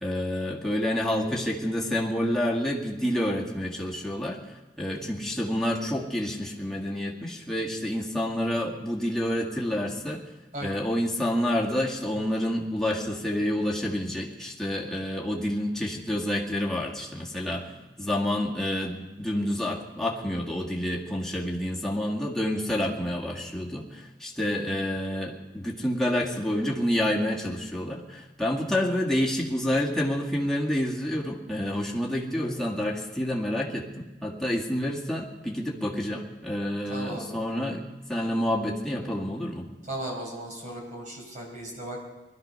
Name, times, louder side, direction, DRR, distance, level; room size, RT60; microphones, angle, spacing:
voice 1, 0.0-4.4 4.8-10.2 10.6-17.7 18.0-39.7, left 1 dB, 5° left, -3 dB, 1.9 m, -28 dB
voice 2, 36.9-37.4 39.9-42.1, right 1 dB, 45° right, 0 dB, 4.7 m, -37 dB
20.5 x 12.5 x 5.5 m, 1.1 s
head